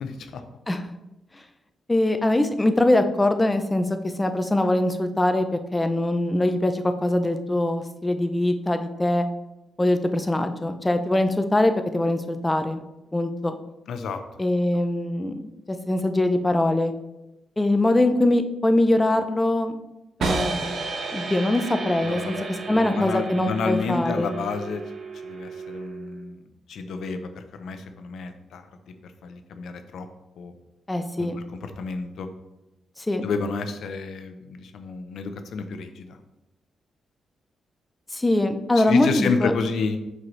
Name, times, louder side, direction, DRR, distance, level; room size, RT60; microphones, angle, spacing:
voice 1, 0.0-0.4 13.9-14.2 22.0-24.8 25.2-26.4 26.7-28.6 29.0-30.1 30.4-30.5 31.2-32.3 33.2-36.2 38.7-40.0, left 4 dB, 75° left, 7 dB, 0.6 m, -30 dB
voice 2, 1.9-3.9 4.2-9.3 9.8-12.8 13.1-13.6 14.4-16.9 17.6-19.8 20.2-20.6 21.1-22.4 22.7-24.3 30.9-31.4 33.0-33.2 38.1-39.5, left 1 dB, 10° left, 8 dB, 0.5 m, -22 dB
sound 1, 20.2-26.2, right 3 dB, 75° right, 1.1 m, -32 dB
7.7 x 5.5 x 3.2 m, 0.95 s
wide cardioid pair, 160°, 0 cm